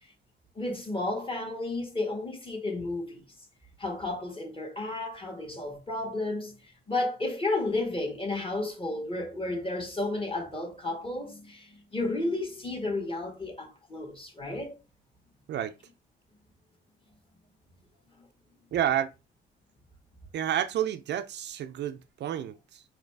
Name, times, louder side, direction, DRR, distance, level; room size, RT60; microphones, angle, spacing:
voice 1, 0.5-3.2 3.8-6.6 6.9-14.8, left 2 dB, 25° left, 1.6 m, -32 dB
voice 2, 18.7-19.1 20.3-22.8, right 10 dB, 60° right, 0.4 m, -30 dB
4.0 x 2.8 x 3.3 m
cardioid pair, 90°, 20 cm